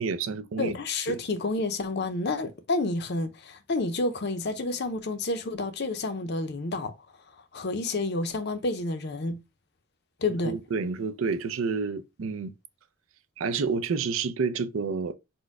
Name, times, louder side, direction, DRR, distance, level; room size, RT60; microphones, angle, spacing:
voice 1, 0.0-0.8 1.1-1.2 10.5-12.5 13.4-15.2, right 5 dB, 70° right, 0.4 m, -29 dB
voice 2, 0.6-6.9 7.5-9.4 10.2-10.6, left 2 dB, 50° left, 0.6 m, -29 dB
4.3 x 2.2 x 4.6 m
head